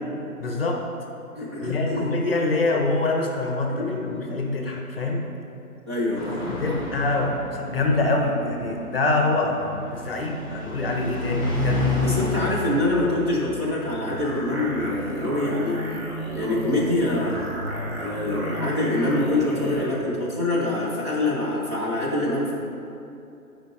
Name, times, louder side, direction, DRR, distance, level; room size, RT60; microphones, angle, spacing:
voice 1, 0.4-0.9 1.6-5.3 6.5-11.9, left 2 dB, 40° left, 2 dB, 0.8 m, -25 dB
voice 2, 1.3-2.2 3.8-4.3 5.9-6.9 12.0-15.8 16.3-17.5 18.0-22.5, left 2 dB, 20° right, -7 dB, 0.6 m, -25 dB
sound 1, 6.1-17.1, left 2 dB, ahead, 1.8 m, -31 dB
sound 2, 14.1-19.9, right 1 dB, 40° right, 1.5 m, -32 dB
15.0 x 5.0 x 2.4 m, 2.6 s
figure-of-eight pair, 145°, 44 cm